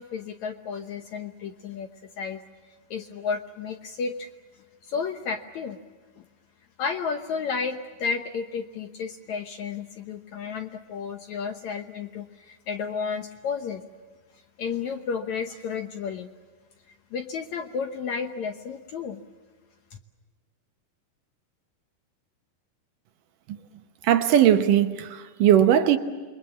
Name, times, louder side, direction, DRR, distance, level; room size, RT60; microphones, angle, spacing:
voice 1, 0.0-1.9 2.2-2.4 2.9-4.3 4.9-5.8 6.8-13.8 14.6-16.3 17.1-19.2, left 5 dB, 65° left, 2.0 m, -32 dB
voice 2, 24.0-26.0, right 10 dB, 70° right, 2.3 m, -19 dB
28.5 x 22.5 x 7.3 m
omnidirectional pair, 4.3 m